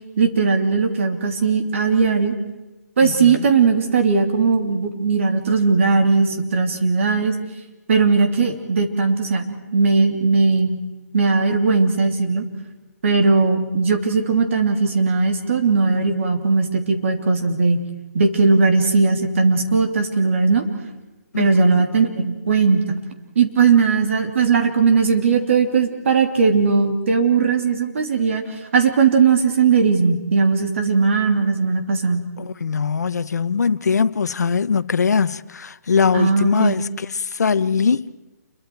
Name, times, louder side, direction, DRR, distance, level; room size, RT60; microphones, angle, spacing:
voice 1, 0.2-2.3 3.0-7.3 7.9-10.7 11.1-12.4 13.0-17.8 18.1-20.6 21.4-23.0 23.3-28.4 28.7-32.2 36.1-36.8, right 4 dB, 50° right, 3.1 m, -18 dB
voice 2, 3.0-3.5 21.3-21.8 32.4-38.1, left 6 dB, 75° left, 0.9 m, -21 dB
29.0 x 23.0 x 4.7 m
hypercardioid pair, 170°, 9 cm